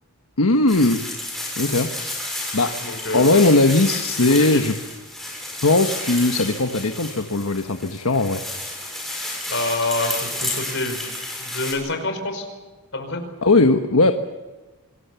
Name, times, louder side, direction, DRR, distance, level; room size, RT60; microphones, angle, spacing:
voice 1, 0.4-1.0 1.6-1.9 2.5-2.8 3.1-4.7 5.6-8.4 13.4-14.1, left 2 dB, 75° left, 6 dB, 1.3 m, -18 dB
sound 1, 0.7-11.7, left 1 dB, ahead, 7.2 m, -31 dB
voice 2, 2.8-3.4 4.3-4.6 9.5-11.1 11.4-12.5 12.9-13.2, left 2 dB, 55° left, 5 dB, 5.3 m, -27 dB
27.0 x 20.5 x 7.0 m, 1.2 s
head